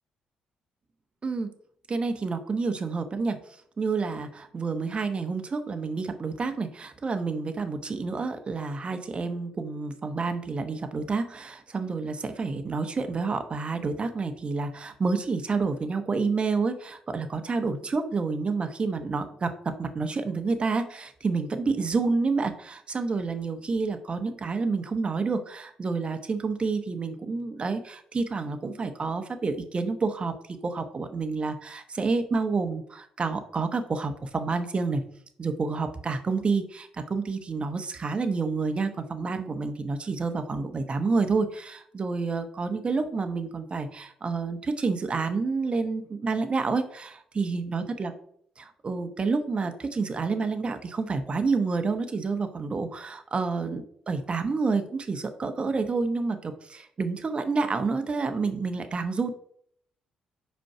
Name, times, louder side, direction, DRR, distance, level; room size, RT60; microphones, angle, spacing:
voice 1, 1.9-3.4 3.8-19.5 19.8-30.3 30.6-35.0 35.4-48.1 48.6-59.3, right 4 dB, 40° right, 7 dB, 1.0 m, -29 dB
5.1 x 4.5 x 4.8 m, 0.63 s
hypercardioid pair, 50°, 3 cm